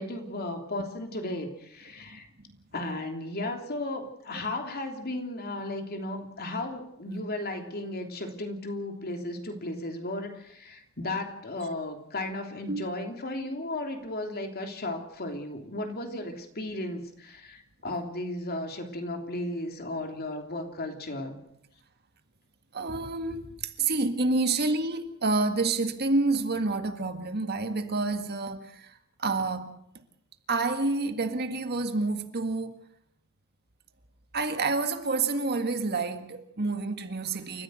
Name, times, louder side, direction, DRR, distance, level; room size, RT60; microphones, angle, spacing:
voice 1, 0.0-2.3 2.7-21.4, left 1 dB, 45° left, 3.1 m, -35 dB
voice 2, 22.7-29.8 30.5-32.8 34.3-37.6, right 3 dB, 50° right, 1.8 m, -28 dB
29.0 x 14.5 x 6.4 m
head